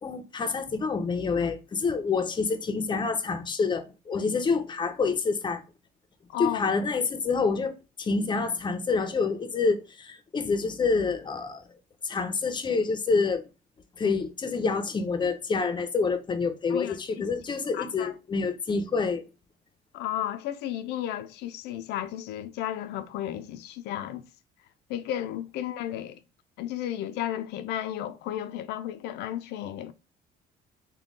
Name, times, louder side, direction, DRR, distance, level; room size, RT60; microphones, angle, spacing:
voice 1, 0.0-5.6 6.4-11.6 12.0-13.4 14.0-19.2, left 4 dB, 25° left, 0.6 m, -27 dB
voice 2, 6.3-6.7 16.7-17.0 17.7-18.1 19.9-24.2 24.9-26.2 26.6-29.9, left 12 dB, 80° left, 0.4 m, -33 dB
3.7 x 2.2 x 3.7 m
cardioid pair, 110°, 17 cm